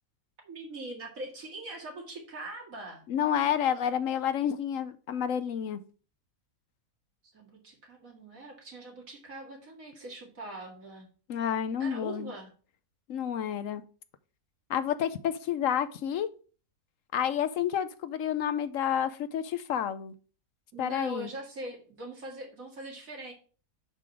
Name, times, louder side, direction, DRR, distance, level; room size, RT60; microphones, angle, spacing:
voice 1, 0.4-3.0 7.3-11.1 11.8-12.5 20.7-23.3, right 2 dB, 65° right, 2.5 m, -42 dB
voice 2, 3.1-5.8 11.3-12.3 13.1-13.8 14.7-16.3 17.1-20.1 20.8-21.3, left 9 dB, 70° left, 1.0 m, -29 dB
10.5 x 3.9 x 4.8 m
omnidirectional pair, 1.5 m